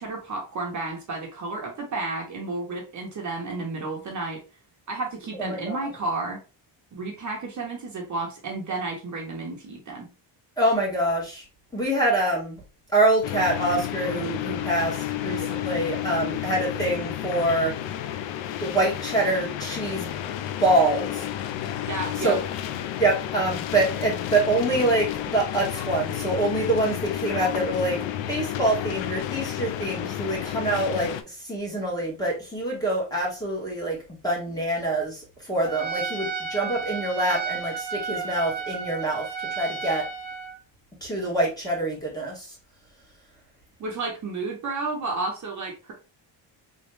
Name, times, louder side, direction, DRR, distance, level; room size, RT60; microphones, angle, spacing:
voice 1, 0.0-4.4 4.9-6.4 6.9-10.1 21.9-22.4 43.8-45.9, right 3 dB, 40° right, -1 dB, 1.0 m, -32 dB
voice 2, 5.4-5.8 10.6-11.4 11.7-12.6 12.9-17.7 18.6-20.1 20.6-21.2 22.2-22.4 23.0-28.0 28.3-34.0 34.2-39.3 39.6-40.1 41.0-42.5, right 2 dB, 10° left, -3 dB, 1.5 m, -25 dB
sound 1, 13.2-31.2, left 11 dB, 90° left, 0.6 m, -31 dB
Trumpet, 35.7-40.6, right 5 dB, 70° right, 1.0 m, -32 dB
3.6 x 3.2 x 3.2 m, 0.32 s
cardioid pair, 165°, 44 cm